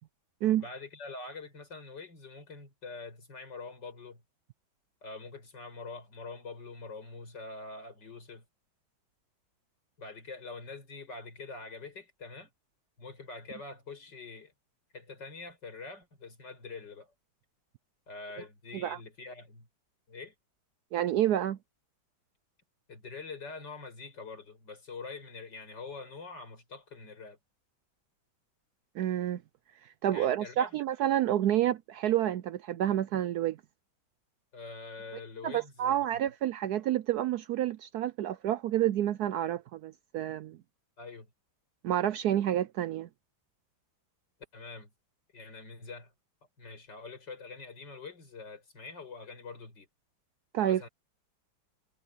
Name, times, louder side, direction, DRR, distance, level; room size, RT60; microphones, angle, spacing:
voice 1, 0.6-4.2 5.0-8.4 10.0-12.5 13.0-14.5 14.9-17.1 18.1-19.7 20.1-20.3 22.9-27.4 30.1-30.8 34.5-36.0 41.0-41.3 44.5-44.9 45.3-46.1 46.6-49.9 50.6-50.9, left 4 dB, 60° left, 6.6 m, -45 dB
voice 2, 20.9-21.6 29.0-29.4 30.0-33.6 35.4-40.6 41.8-43.1 50.5-50.9, right 12 dB, 75° right, 0.8 m, -29 dB
omnidirectional pair, 2.2 m